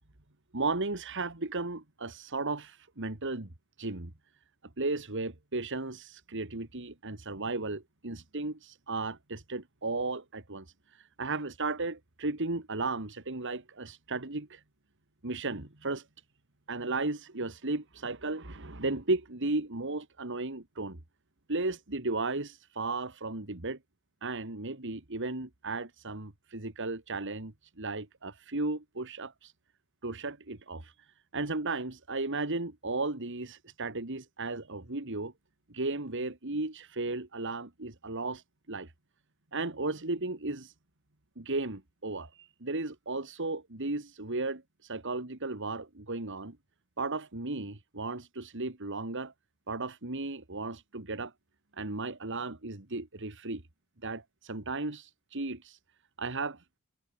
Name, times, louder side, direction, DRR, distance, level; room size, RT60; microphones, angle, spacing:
voice 1, 0.5-3.5 3.8-4.1 4.8-14.6 15.2-16.1 16.7-21.0 21.5-23.8 24.2-29.5 30.0-31.1 31.3-35.3 35.7-38.9 39.5-40.7 41.4-46.6 47.0-49.3 49.7-51.3 51.7-53.6 54.0-55.8 56.2-56.6, right 3 dB, 55° right, 2.2 m, -35 dB
head